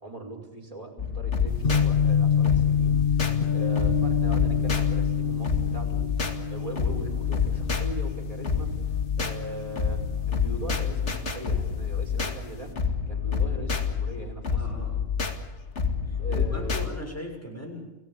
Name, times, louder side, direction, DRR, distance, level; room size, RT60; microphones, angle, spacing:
voice 1, 0.0-6.1 6.5-8.7 9.2-12.7 13.1-14.7 16.2-16.8, right 1 dB, 30° right, 2 dB, 5.1 m, -40 dB
sound 1, 1.0-16.9, left 6 dB, 80° left, 2.4 m, -28 dB
sound 2, 1.5-11.5 11.8-12.6, left 7 dB, 50° left, 1.3 m, -27 dB
voice 2, 5.6-6.0 14.5-15.1 16.0-17.9, left 1 dB, 10° left, 1 dB, 6.9 m, -39 dB
29.5 x 18.0 x 7.1 m, 1.0 s
omnidirectional pair, 1.2 m